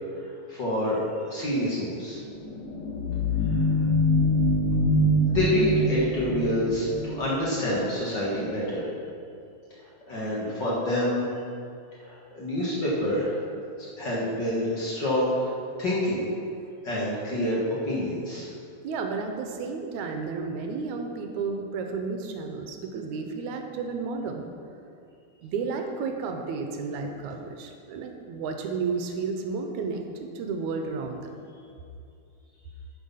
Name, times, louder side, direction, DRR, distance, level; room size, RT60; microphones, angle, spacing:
voice 1, 0.5-2.2 3.5-3.7 5.3-8.9 10.1-11.3 12.0-13.4 13.8-15.5 15.8-16.2 16.8-18.5, left 1 dB, 45° left, -6 dB, 1.9 m, -27 dB
sound 1, 2.2-7.7, left 1 dB, 65° left, 3.0 m, -25 dB
voice 2, 18.8-24.5 25.4-31.3, right 4 dB, 80° right, 4 dB, 2.1 m, -32 dB
9.9 x 5.9 x 5.6 m, 2.5 s
omnidirectional pair, 3.4 m